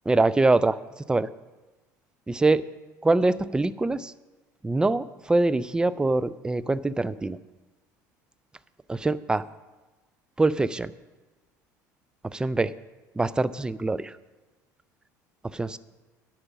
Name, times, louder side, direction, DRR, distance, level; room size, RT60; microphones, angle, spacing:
voice 1, 0.1-0.8 1.1-1.3 2.3-2.6 3.0-4.1 4.6-7.4 8.9-9.4 10.4-10.9 12.3-12.7 13.2-14.1 15.5-15.8, right 2 dB, 10° right, 17 dB, 0.3 m, -24 dB
9.6 x 6.1 x 7.2 m, 1.2 s
figure-of-eight pair, 65°, 10 cm